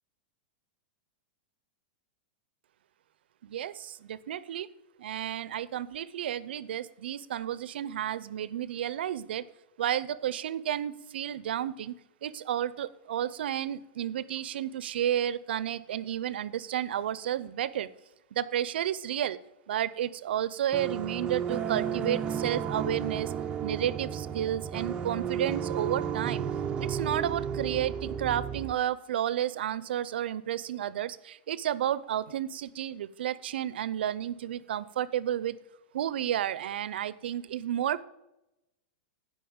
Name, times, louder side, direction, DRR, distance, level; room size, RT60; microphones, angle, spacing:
voice 1, 3.4-4.7 5.0-9.5 9.8-17.9 18.3-19.4 19.7-23.3 23.6-26.5 26.8-35.6 35.9-38.0, right 11 dB, 85° right, 18 dB, 0.5 m, -32 dB
sound 1, 20.7-28.7, right 8 dB, 15° right, 0.4 m, -33 dB
8.6 x 5.3 x 7.1 m, 0.91 s
supercardioid pair, 165°, 6 cm